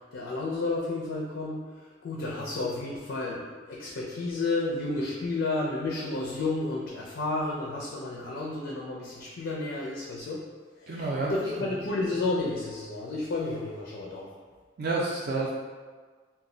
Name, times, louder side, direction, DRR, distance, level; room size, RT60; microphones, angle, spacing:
voice 1, 0.1-1.7 2.0-10.4 10.8-14.3, left 2 dB, 65° left, -4 dB, 0.4 m, -31 dB
voice 2, 10.9-11.3 14.8-15.5, right 3 dB, 55° right, -4 dB, 0.4 m, -29 dB
2.2 x 2.1 x 3.7 m, 1.5 s
head